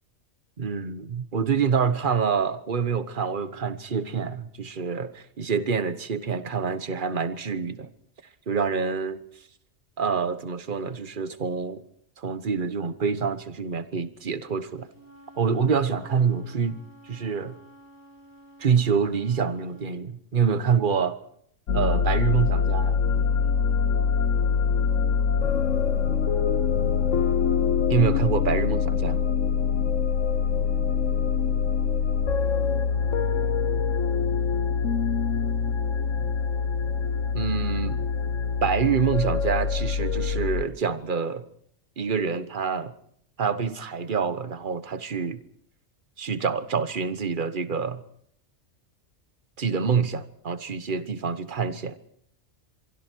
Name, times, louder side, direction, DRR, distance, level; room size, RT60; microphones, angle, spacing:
voice 1, 0.6-7.9 8.5-9.2 10.0-11.8 12.2-14.9 15.4-17.5 18.6-21.2 21.7-23.0 27.9-29.2 37.3-38.1 38.6-41.4 42.0-42.9 43.4-45.4 46.2-48.0 49.6-52.0, right 6 dB, 40° right, 1.3 m, -26 dB
Wind instrument woodwind instrument, 14.8-19.9, equal, 45° left, 4.4 m, -51 dB
sound 1, 21.7-40.6, left 6 dB, 80° left, 1.4 m, -24 dB
25.5 x 23.0 x 4.6 m
omnidirectional pair, 1.3 m